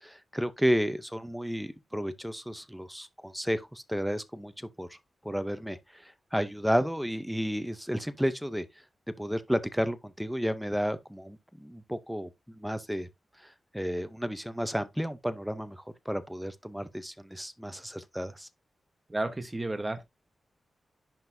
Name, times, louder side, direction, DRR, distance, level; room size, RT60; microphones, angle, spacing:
voice 1, 0.0-5.0 5.2-8.6 9.2-13.1 13.4-18.5, equal, ahead, 0.6 m, -32 dB
voice 2, 19.1-20.0, right 2 dB, 15° right, 1.1 m, -32 dB
10.5 x 4.0 x 2.6 m
wide cardioid pair, 145°, 0 cm